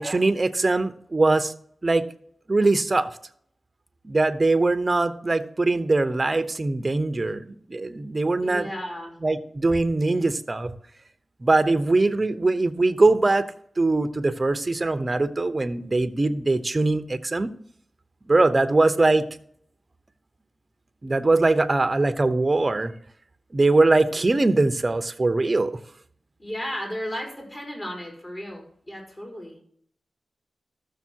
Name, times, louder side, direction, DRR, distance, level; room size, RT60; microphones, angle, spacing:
voice 1, 0.0-1.5 1.8-2.1 2.5-3.1 4.0-8.7 9.2-10.7 11.4-13.4 13.8-17.5 18.3-19.3 21.0-22.9 23.5-25.7, right 2 dB, 30° right, 9 dB, 0.9 m, -22 dB
voice 2, 8.4-9.1 26.4-29.6, equal, 30° left, 0 dB, 5.0 m, -34 dB
14.0 x 6.7 x 4.6 m, 0.64 s
cardioid pair, 70°, 0 cm